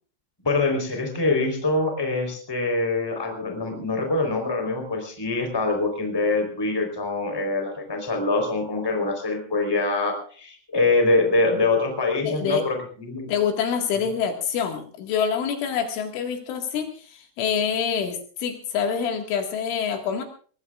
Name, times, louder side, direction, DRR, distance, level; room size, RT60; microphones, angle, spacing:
voice 1, 0.4-13.3, left 3 dB, 5° left, 4 dB, 3.2 m, -24 dB
voice 2, 12.2-12.7 13.3-20.2, left 7 dB, 70° left, 4 dB, 4.3 m, -26 dB
23.5 x 19.5 x 2.5 m, 0.43 s
omnidirectional pair, 5.9 m